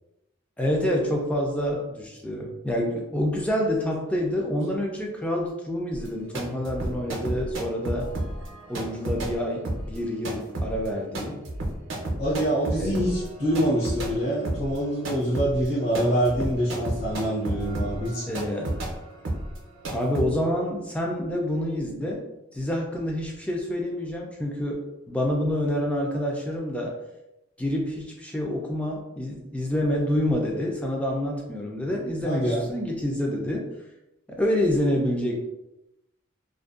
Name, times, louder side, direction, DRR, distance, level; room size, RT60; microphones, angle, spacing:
voice 1, 0.6-8.1 8.7-11.4 12.8-13.1 18.2-18.7 19.9-22.2 22.5-27.0 27.6-33.7 34.3-35.5, left 1 dB, 5° left, -1 dB, 0.3 m, -27 dB
sound 1, 5.9-14.2 14.4-20.3, right 1 dB, 75° right, 0.6 m, -32 dB
voice 2, 12.2-18.2 32.2-32.7, equal, 40° left, -12 dB, 0.8 m, -25 dB
2.5 x 2.1 x 2.3 m, 0.93 s
head